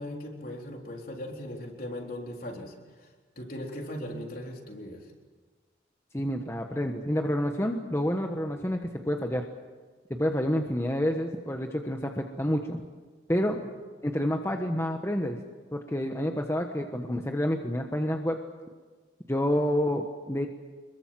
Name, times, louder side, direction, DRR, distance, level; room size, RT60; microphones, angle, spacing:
voice 1, 0.0-3.1 3.4-5.1 13.5-13.6, left 1 dB, 50° left, 1 dB, 3.9 m, -39 dB
voice 2, 6.1-8.8 9.0-9.4 10.1-12.8 13.3-13.6 14.0-15.4 15.7-18.4 19.3-20.5, equal, 15° left, 3 dB, 1.3 m, -28 dB
26.5 x 22.0 x 7.6 m, 1.4 s
head